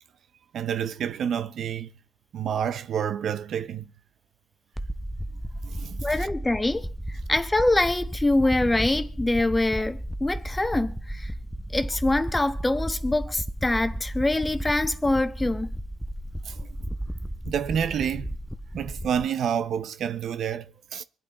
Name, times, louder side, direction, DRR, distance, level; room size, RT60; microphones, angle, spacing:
voice 1, 0.5-1.9 2.3-3.9 5.6-6.1 16.5-16.7 17.5-18.4 18.7-21.0, right 8 dB, 65° right, 0.6 m, -29 dB
sound 1, 4.8-19.2, right 1 dB, ahead, 0.6 m, -34 dB
voice 2, 6.0-11.3 11.7-15.7, left 2 dB, 15° left, 1.1 m, -24 dB
24.5 x 8.9 x 3.7 m
cardioid pair, 90°, 0 cm